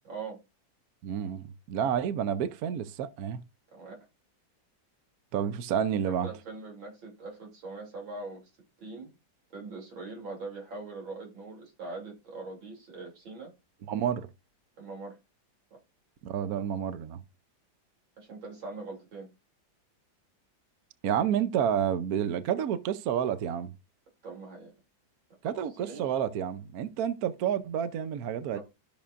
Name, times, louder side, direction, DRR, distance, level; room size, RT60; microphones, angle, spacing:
voice 1, 0.1-0.4 3.7-4.0 6.0-8.4 8.8-9.1 9.5-13.5 14.8-15.2 18.2-19.3 24.2-24.7 25.8-26.1 28.5-28.6, right 3 dB, 85° right, 3.8 m, -42 dB
voice 2, 1.0-3.4 5.3-6.3 13.9-14.3 16.2-17.2 21.0-23.7 25.4-28.6, right 9 dB, 65° right, 1.0 m, -29 dB
13.5 x 6.3 x 2.5 m
omnidirectional pair, 2.1 m